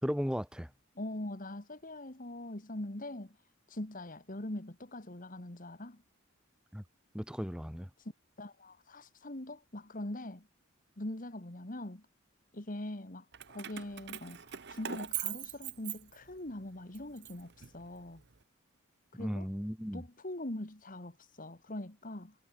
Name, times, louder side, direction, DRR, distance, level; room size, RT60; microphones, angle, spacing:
voice 1, 0.0-0.7 6.7-6.8 7.1-7.9 19.2-20.0, equal, 5° right, 2.4 m, -35 dB
voice 2, 1.0-3.4 3.7-6.0 8.0-8.1 8.4-10.5 11.0-12.1 12.5-18.2 19.1-19.5 19.9-22.4, left 1 dB, 40° left, 1.9 m, -42 dB
Keys jangling, 13.3-16.5 16.9-18.2, right 11 dB, 55° right, 1.2 m, -41 dB
head